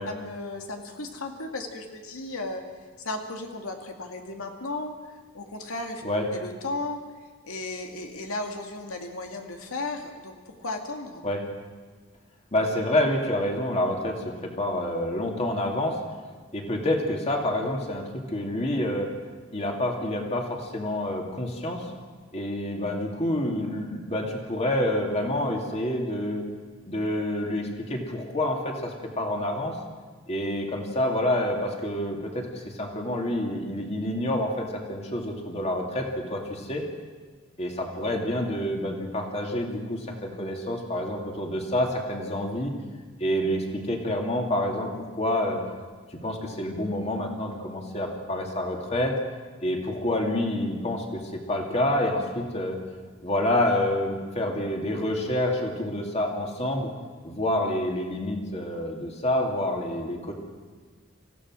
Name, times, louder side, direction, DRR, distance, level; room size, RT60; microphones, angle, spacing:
voice 1, 0.1-2.6 3.0-5.0 5.3-6.0 6.3-7.0 7.4-11.2, left 2 dB, 85° left, 3 dB, 2.1 m, -35 dB
voice 2, 12.5-16.0 16.5-19.1 19.5-21.8 22.3-26.4 26.8-29.8 30.3-36.8 37.6-42.7 43.2-45.6 46.1-49.1 49.6-52.8 53.2-56.9 57.2-60.3, left 1 dB, 30° left, 1 dB, 2.5 m, -28 dB
26.5 x 15.5 x 6.2 m, 1.5 s
head